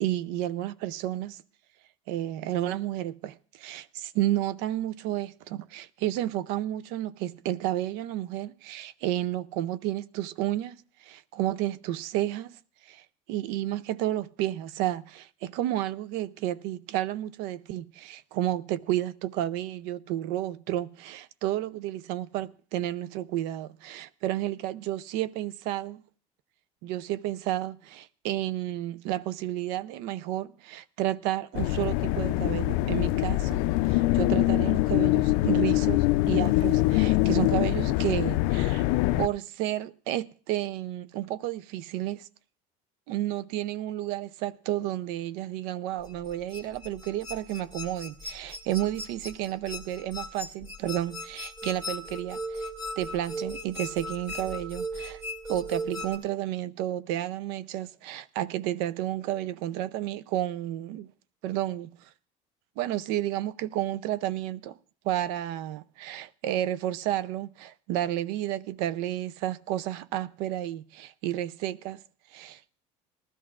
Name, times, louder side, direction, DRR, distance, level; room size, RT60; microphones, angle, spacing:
voice 1, 0.0-1.4 2.1-12.6 12.9-26.0 26.8-38.9 39.2-42.3 43.1-52.7 53.0-55.2 55.5-61.1 61.4-62.0 62.8-64.8 65.0-72.0 72.3-72.6, right 13 dB, 80° right, 0.5 m, -31 dB
sound 1, 31.5-39.3, left 17 dB, 80° left, 0.4 m, -24 dB
sound 2, 46.1-56.2, equal, 15° right, 2.3 m, -37 dB
19.5 x 13.0 x 2.4 m
cardioid pair, 130°, 17 cm